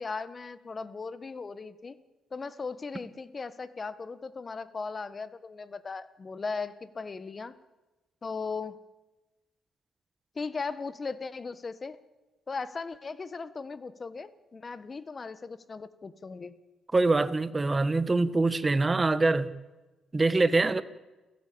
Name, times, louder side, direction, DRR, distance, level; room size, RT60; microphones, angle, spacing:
voice 1, 0.0-1.9 2.3-7.5 8.2-8.8 10.3-12.0 12.5-16.5, left 4 dB, 35° left, 14 dB, 1.5 m, -37 dB
voice 2, 16.9-19.5 20.1-20.8, right 3 dB, 25° right, 13 dB, 1.5 m, -24 dB
29.5 x 16.5 x 8.8 m, 1.1 s
cardioid pair, 90°, 0 cm